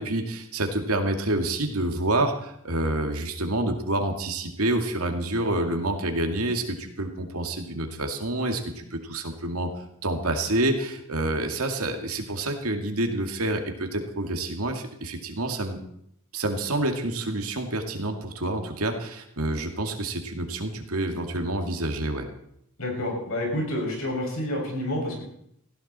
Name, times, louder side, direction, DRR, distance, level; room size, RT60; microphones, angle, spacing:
voice 1, 0.0-9.7 10.0-15.8 16.3-22.3, right 1 dB, 80° right, 5 dB, 2.3 m, -28 dB
voice 2, 22.8-25.2, left 1 dB, 70° left, 0 dB, 6.7 m, -29 dB
18.5 x 15.5 x 4.4 m, 0.73 s
head